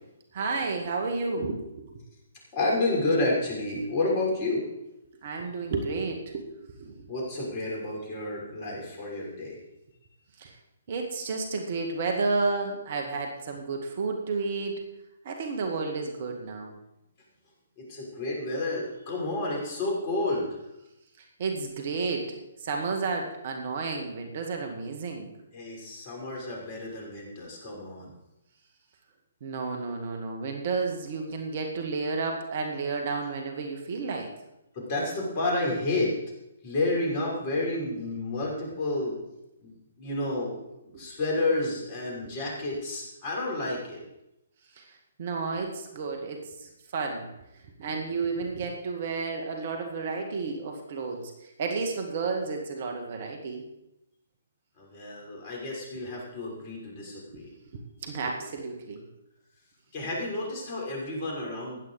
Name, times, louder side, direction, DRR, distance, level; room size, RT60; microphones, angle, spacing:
voice 1, 0.3-2.0 5.2-7.0 10.4-10.6 10.9-14.8 15.2-16.7 21.4-25.3 29.4-34.3 40.9-41.1 42.2-42.4 44.8-47.3 47.8-53.7 57.3-57.4 57.7-59.0, right 4 dB, 45° right, 3 dB, 2.2 m, -32 dB
voice 2, 2.5-4.6 7.1-9.6 17.8-20.5 25.5-28.1 34.7-36.1 36.6-39.2 39.6-40.5 40.8-44.0 54.8-57.5 59.9-61.8, left 2 dB, 35° left, -2 dB, 6.2 m, -30 dB
15.5 x 11.0 x 5.0 m, 0.89 s
figure-of-eight pair, 130°, 0 cm